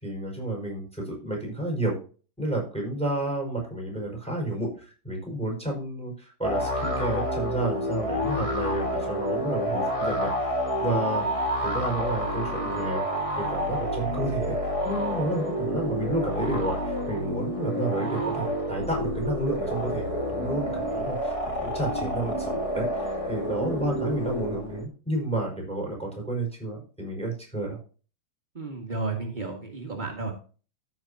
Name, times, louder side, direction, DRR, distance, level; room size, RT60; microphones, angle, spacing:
voice 1, 0.0-1.9 2.4-11.2 11.6-13.0 13.4-27.8, right 1 dB, ahead, 0 dB, 5.0 m, -31 dB
sound 1, 6.4-24.8, equal, 25° left, 0.7 m, -29 dB
voice 2, 28.5-30.3, right 3 dB, 75° right, 1 dB, 0.4 m, -32 dB
14.0 x 7.3 x 2.8 m, 0.37 s
omnidirectional pair, 4.1 m